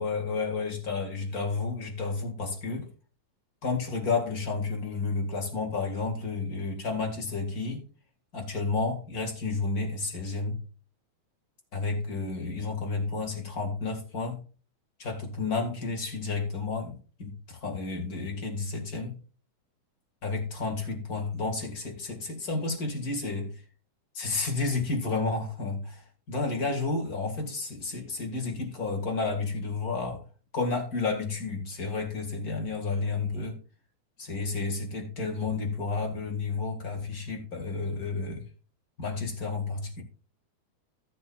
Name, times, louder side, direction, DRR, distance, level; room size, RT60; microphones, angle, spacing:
voice 1, 0.0-2.9 3.6-7.8 8.3-10.6 11.7-14.5 15.0-19.2 20.2-23.6 24.1-30.2 30.5-33.6 34.2-38.5 39.0-40.0, left 3 dB, 35° left, 2.2 m, -31 dB
14.0 x 8.5 x 2.4 m
omnidirectional pair, 3.5 m